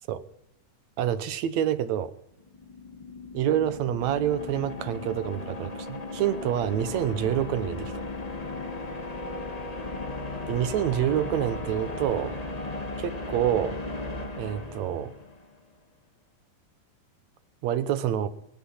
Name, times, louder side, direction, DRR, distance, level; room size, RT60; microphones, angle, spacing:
voice 1, 1.0-2.1 3.3-8.0 10.5-12.4 13.0-13.8 14.4-15.1 17.6-18.3, right 10 dB, 75° right, 12 dB, 2.1 m, -27 dB
sound 1, 2.4-15.5, left 2 dB, 55° left, 0.4 m, -36 dB
24.5 x 9.4 x 5.6 m, 0.79 s
omnidirectional pair, 3.4 m